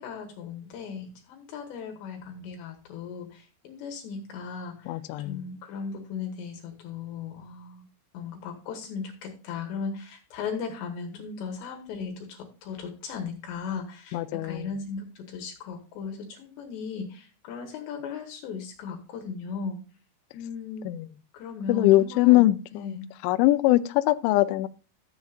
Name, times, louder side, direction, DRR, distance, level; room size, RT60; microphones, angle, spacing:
voice 1, 0.0-7.9 8.1-19.8 20.3-20.9 21.3-23.1, left 5 dB, 70° left, 3 dB, 3.1 m, -37 dB
voice 2, 4.9-5.4 14.1-14.7 20.9-21.0 21.7-23.0 23.2-24.7, left 17 dB, 85° left, 10 dB, 2.7 m, -22 dB
13.0 x 8.3 x 2.4 m, 0.35 s
omnidirectional pair, 5.9 m